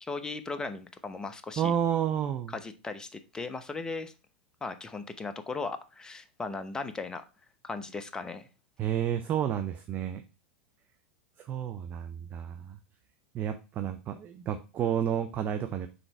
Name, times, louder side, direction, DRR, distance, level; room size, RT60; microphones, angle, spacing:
voice 1, 0.0-1.7 2.5-4.1 4.6-7.2 7.6-8.5, left 3 dB, 15° left, 10 dB, 0.8 m, -37 dB
voice 2, 1.6-2.5 8.8-10.2 11.4-12.8 13.3-15.9, right 9 dB, 30° right, 8 dB, 0.6 m, -30 dB
5.9 x 3.9 x 4.4 m, 0.30 s
hypercardioid pair, 95°, 5 cm